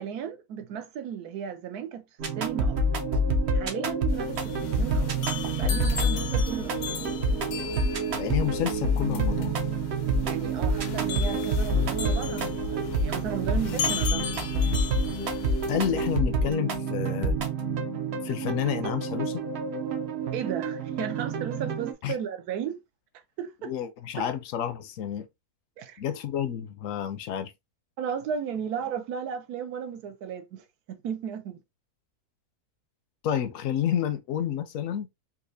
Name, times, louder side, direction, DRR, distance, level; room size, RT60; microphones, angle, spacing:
voice 1, 0.0-2.0 2.4-2.8 3.5-5.1 5.6-7.0 10.2-14.5 20.3-22.8 23.4-23.7 24.2-24.3 25.8-26.0 28.0-31.6, right 8 dB, 85° right, 1.2 m, -35 dB
sound 1, 2.2-21.9, right 2 dB, 55° right, 0.8 m, -28 dB
sound 2, 4.1-16.2, left 6 dB, 85° left, 1.1 m, -36 dB
voice 2, 8.2-9.6 15.7-17.4 18.2-19.4 22.0-22.2 23.6-25.3 26.0-27.5 33.2-35.1, left 10 dB, 70° left, 0.9 m, -29 dB
4.2 x 2.4 x 2.6 m
omnidirectional pair, 1.6 m